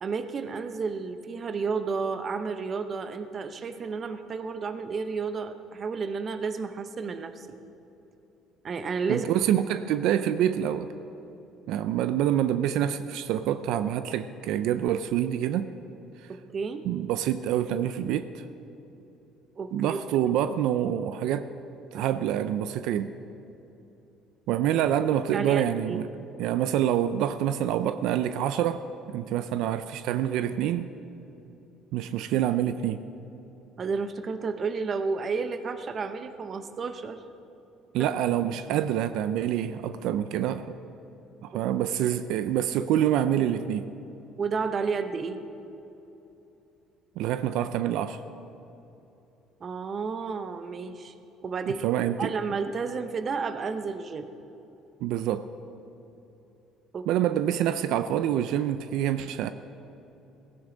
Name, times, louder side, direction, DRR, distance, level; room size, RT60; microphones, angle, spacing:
voice 1, 0.0-7.6 8.6-9.3 16.3-16.8 19.6-20.0 25.3-26.0 33.8-37.2 44.4-45.4 49.6-51.1 51.4-51.9 52.2-54.3 56.9-57.1, right 5 dB, 30° right, 9 dB, 0.8 m, -31 dB
voice 2, 9.1-10.9 11.7-15.7 16.8-18.4 19.7-21.5 21.9-23.1 24.5-28.8 29.1-30.9 31.9-33.0 37.9-40.8 41.4-43.8 47.2-48.2 51.8-52.3 55.0-55.5 57.1-59.5, right 11 dB, 70° right, 11 dB, 0.5 m, -26 dB
17.0 x 16.0 x 3.9 m, 3.0 s
cardioid pair, 150°, 0 cm